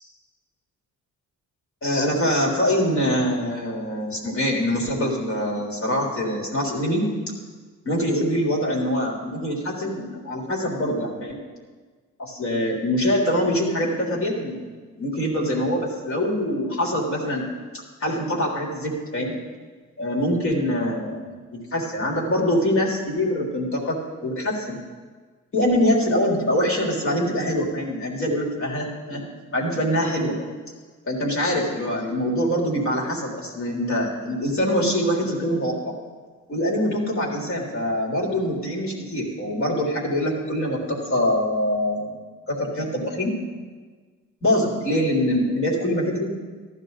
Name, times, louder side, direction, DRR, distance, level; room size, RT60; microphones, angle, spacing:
voice 1, 1.8-7.1 7.9-11.4 12.2-14.6 15.0-17.5 18.0-19.3 20.0-21.4 21.7-24.8 25.5-29.3 29.5-30.3 31.0-35.9 36.5-42.2 42.5-43.3 44.4-46.3, equal, 45° left, -2 dB, 3.6 m, -24 dB
15.0 x 12.5 x 4.1 m, 1.4 s
cardioid pair, 90°, 30 cm